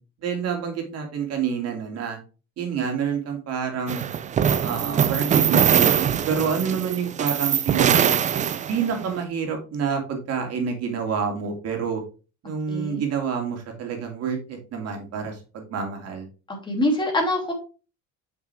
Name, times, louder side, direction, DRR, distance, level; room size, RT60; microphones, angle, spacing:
voice 1, 0.2-2.2 2.6-4.0 4.6-8.1 8.7-12.0 12.4-16.3, right 6 dB, 50° right, 3 dB, 2.8 m, -28 dB
sound 1, 3.9-9.0, right 8 dB, 25° right, 0.4 m, -22 dB
voice 2, 12.7-13.0 16.5-17.5, left 1 dB, 15° left, 1 dB, 2.9 m, -24 dB
7.4 x 6.1 x 3.5 m, 0.32 s
cardioid pair, 135°, 32 cm